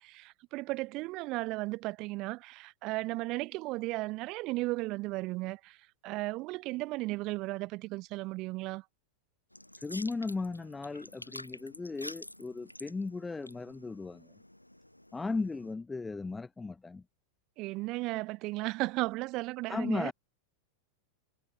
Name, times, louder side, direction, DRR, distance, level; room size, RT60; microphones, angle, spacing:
voice 1, 0.0-5.8 6.0-8.8 17.6-20.1, right 21 dB, 40° right, 0.6 m, -35 dB
sound 1, 9.5-15.7, left 1 dB, 85° left, 1.9 m, -49 dB
voice 2, 9.8-14.3 15.1-17.0 19.7-20.1, left 3 dB, 10° left, 0.8 m, -36 dB
figure-of-eight pair, 90°, 0 cm